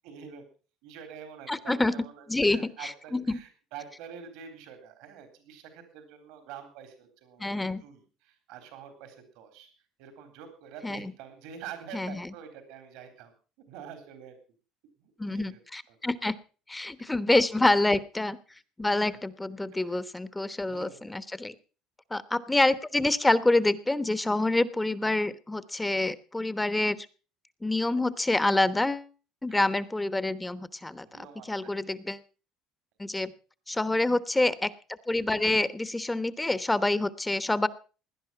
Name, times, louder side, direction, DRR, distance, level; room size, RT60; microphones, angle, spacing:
voice 1, 0.0-0.5 0.8-9.7 10.0-13.3 13.7-14.4 15.0-15.6 15.9-16.0 19.9-20.0 20.7-21.2 29.5-29.7 31.1-31.7, right 8 dB, 80° right, 7 dB, 3.8 m, -46 dB
voice 2, 1.5-1.9 2.3-3.4 7.4-7.8 10.8-11.1 11.9-12.3 15.2-16.3 16.7-18.4 18.8-21.5 22.1-27.1 27.6-29.1 29.4-32.2 33.0-33.3 33.7-34.7 35.1-37.7, left 2 dB, 10° left, 14 dB, 1.1 m, -27 dB
17.5 x 10.5 x 5.8 m, 0.38 s
supercardioid pair, 105°, 0 cm